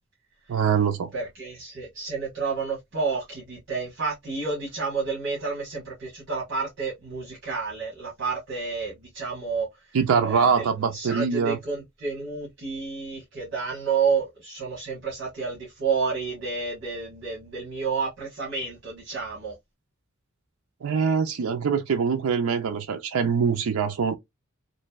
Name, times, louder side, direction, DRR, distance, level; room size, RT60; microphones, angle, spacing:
voice 1, 0.5-1.1 9.9-11.6 20.8-24.2, right 6 dB, 90° right, 0.4 m, -23 dB
voice 2, 1.1-9.7 10.2-19.5, right 5 dB, 60° right, 1.3 m, -30 dB
3.0 x 2.5 x 2.3 m
head